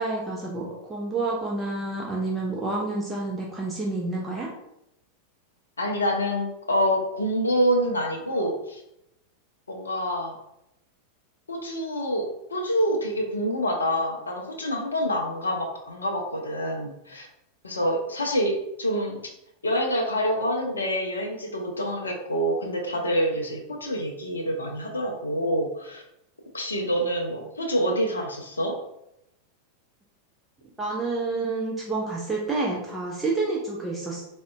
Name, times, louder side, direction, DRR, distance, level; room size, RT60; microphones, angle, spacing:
voice 1, 0.0-4.5 30.8-34.2, right 3 dB, 10° right, -3 dB, 0.5 m, -29 dB
voice 2, 5.8-8.8 9.7-10.4 11.5-17.3 17.6-19.2 19.6-26.0 26.5-28.8, equal, 75° left, 1 dB, 0.4 m, -26 dB
3.6 x 2.1 x 2.3 m, 0.83 s
figure-of-eight pair, 90°, 0 cm